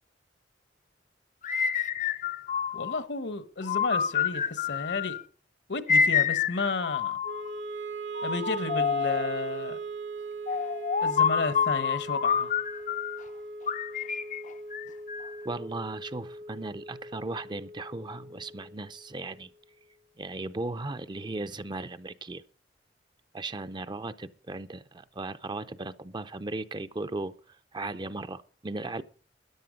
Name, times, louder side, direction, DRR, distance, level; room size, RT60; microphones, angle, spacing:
Whistle Project, 1.4-3.0 3.6-5.2 5.9-7.5 8.2-9.4 10.5-13.2 13.7-15.5, left 7 dB, 45° left, 0.6 m, -28 dB
voice 1, 2.7-5.2 5.7-7.2 8.2-9.8 11.0-12.5, left 3 dB, 70° left, 1.2 m, -32 dB
Wind instrument woodwind instrument, 7.2-19.5, right 3 dB, 75° right, 1.3 m, -40 dB
voice 2, 15.4-19.5 20.2-22.4 23.3-29.0, right 2 dB, 25° right, 0.6 m, -37 dB
13.5 x 10.5 x 5.2 m
head